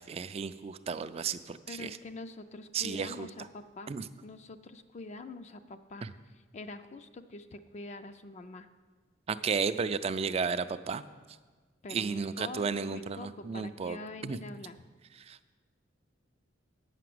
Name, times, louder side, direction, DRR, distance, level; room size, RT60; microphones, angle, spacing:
voice 1, 0.0-1.9 2.7-3.3 3.9-4.0 6.0-6.1 9.3-11.0 11.9-14.0 14.2-14.4 15.3-15.6, right 5 dB, 30° right, 12 dB, 0.3 m, -33 dB
voice 2, 1.7-4.0 4.2-8.7 11.8-14.8, left 2 dB, 35° left, 9 dB, 0.4 m, -45 dB
9.1 x 5.9 x 7.7 m, 1.4 s
head